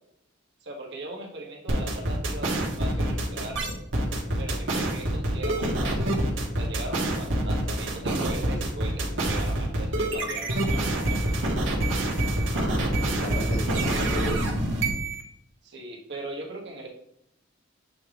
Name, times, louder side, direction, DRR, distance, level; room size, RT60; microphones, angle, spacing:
voice 1, 0.6-3.8 4.4-6.2 6.6-11.4 15.6-16.9, right 2 dB, 60° right, 1 dB, 1.4 m, -39 dB
sound 1, 1.7-15.2, right 1 dB, 80° right, 1.4 m, -26 dB
voice 2, 12.5-14.5, equal, 80° left, -3 dB, 2.4 m, -32 dB
7.5 x 3.5 x 3.7 m, 0.78 s
head